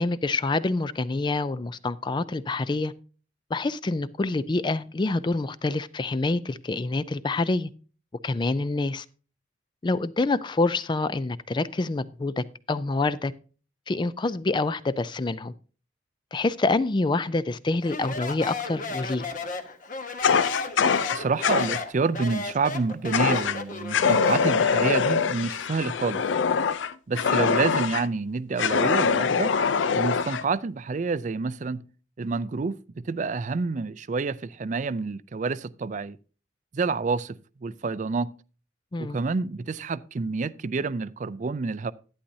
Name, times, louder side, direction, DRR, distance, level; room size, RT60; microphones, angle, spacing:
voice 1, 0.0-2.9 3.5-7.7 8.2-9.0 9.8-13.3 13.9-15.5 16.3-19.3 38.9-39.2, left 3 dB, 25° left, 0.4 m, -26 dB
Speech, 17.8-24.6, left 3 dB, 45° left, 1.1 m, -34 dB
Fire, 20.2-21.8 23.1-23.6 23.9-28.1 28.6-30.4, left 6 dB, 90° left, 0.5 m, -23 dB
voice 2, 21.1-26.3 27.1-29.5 29.9-31.8 32.2-36.2 36.7-38.3 39.0-41.9, right 4 dB, 40° right, 0.4 m, -28 dB
11.5 x 10.0 x 2.7 m
head